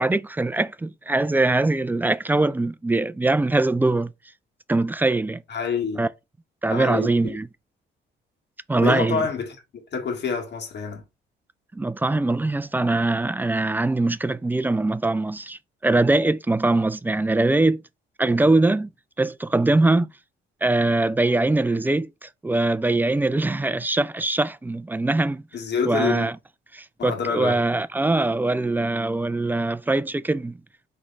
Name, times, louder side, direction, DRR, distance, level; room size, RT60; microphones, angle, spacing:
voice 1, 0.0-4.1 4.7-5.4 6.0-6.1 6.6-7.5 8.7-9.2 11.7-17.8 18.2-18.9 19.2-20.1 20.6-25.4 25.9-26.4 26.7-30.6, right 2 dB, 10° right, 0.3 m, -22 dB
voice 2, 5.5-6.0 6.7-7.4 8.8-11.0 25.5-26.3 27.0-27.6, left 5 dB, 60° left, 1.6 m, -27 dB
4.2 x 3.2 x 3.9 m
cardioid pair, 90°, 20 cm